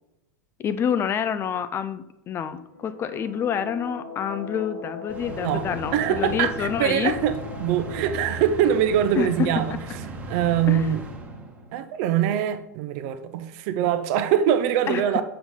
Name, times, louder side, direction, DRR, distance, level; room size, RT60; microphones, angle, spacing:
voice 1, 0.6-7.1 9.1-9.5 10.7-10.9 14.9-15.0, left 8 dB, 25° left, 0.4 m, -27 dB
sound 1, 2.7-11.3, left 5 dB, 75° left, 1.1 m, -40 dB
sound 2, 5.1-11.9, right 2 dB, 15° right, 1.2 m, -37 dB
voice 2, 5.9-9.8 10.3-11.0 11.7-15.2, right 9 dB, 50° right, 0.7 m, -23 dB
7.0 x 5.7 x 3.7 m
figure-of-eight pair, 85°, 9 cm